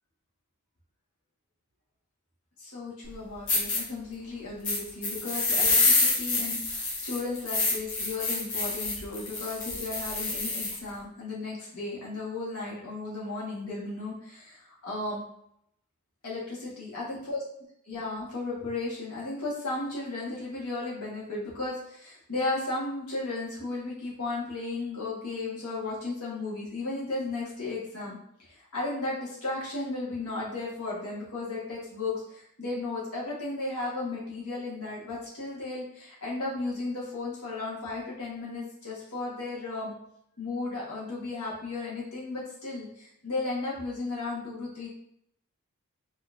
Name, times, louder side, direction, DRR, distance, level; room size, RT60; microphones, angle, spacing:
voice 1, 2.6-15.2 16.2-17.4 17.9-28.2 28.5-39.9 40.4-44.9, left 3 dB, 75° left, -5 dB, 1.4 m, -35 dB
sound 1, 3.0-3.1 3.5-3.8 4.6-10.8, left 3 dB, 60° left, 1.2 m, -27 dB
5.2 x 3.0 x 2.5 m, 0.72 s
head